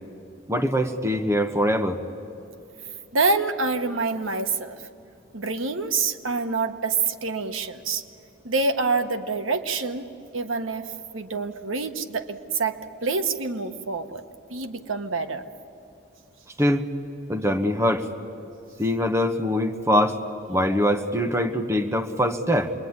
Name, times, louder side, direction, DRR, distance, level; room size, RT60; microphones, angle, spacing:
voice 1, 0.5-2.0 16.6-16.9 17.3-18.1 18.8-20.2 20.5-22.7, equal, 15° right, 5 dB, 1.1 m, -23 dB
voice 2, 3.1-4.8 5.3-8.0 8.4-10.1 10.3-14.2 14.5-15.4, right 4 dB, 90° right, 8 dB, 1.2 m, -26 dB
27.0 x 21.5 x 9.6 m, 2.8 s
head